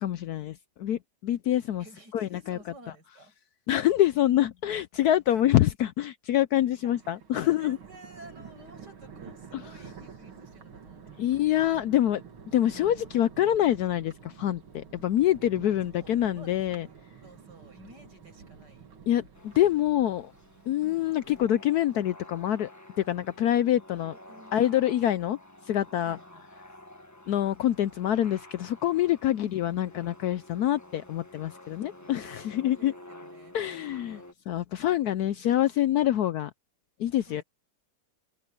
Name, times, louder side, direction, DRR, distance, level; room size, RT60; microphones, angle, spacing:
voice 1, 0.0-1.8 2.1-2.6 3.7-7.8 11.2-16.9 19.1-20.3 20.7-22.7 23.0-24.1 24.5-25.4 25.7-26.2 27.3-32.9 33.5-34.2 34.5-36.5 37.0-37.4, left 12 dB, 75° left, 0.9 m, -26 dB
voice 2, 1.8-3.3 5.3-5.5 6.8-11.3 15.6-18.9 20.8-21.1 24.0-24.6 26.0-26.5 29.4-29.6 31.7-34.3 37.2-37.4, right 1 dB, 55° right, 8.7 m, -53 dB
Thunder, 6.7-21.5, right 6 dB, 85° right, 2.9 m, -49 dB
sound 1, 19.3-34.3, left 1 dB, 10° left, 1.3 m, -50 dB
omnidirectional pair, 2.2 m